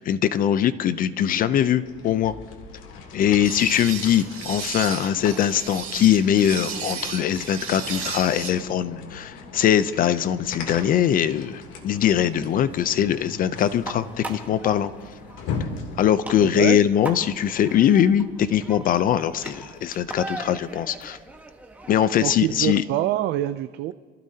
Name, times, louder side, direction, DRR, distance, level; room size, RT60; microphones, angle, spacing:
voice 1, 0.0-2.3 3.1-14.9 16.0-21.2 21.9-22.8, left 10 dB, 40° left, 13 dB, 0.6 m, -21 dB
sound 1, 1.8-16.1, left 5 dB, 65° left, 3.0 m, -39 dB
sound 2, 3.4-8.5, right 7 dB, 40° right, 2.9 m, -34 dB
sound 3, 11.3-22.8, right 2 dB, 5° right, 1.4 m, -41 dB
voice 2, 16.4-16.8 22.2-23.9, right 14 dB, 55° right, 11 dB, 0.5 m, -25 dB
27.0 x 15.5 x 2.9 m, 1.5 s
cardioid pair, 135°, 21 cm